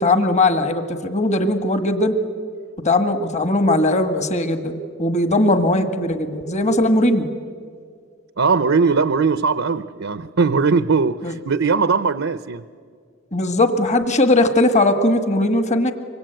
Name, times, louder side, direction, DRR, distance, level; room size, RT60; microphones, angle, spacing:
voice 1, 0.0-2.2 2.8-7.3 11.2-11.3 13.3-15.9, left 2 dB, 35° left, 9 dB, 1.6 m, -19 dB
voice 2, 8.4-12.6, right 4 dB, 75° right, 13 dB, 0.7 m, -19 dB
25.0 x 24.5 x 9.1 m, 2.1 s
head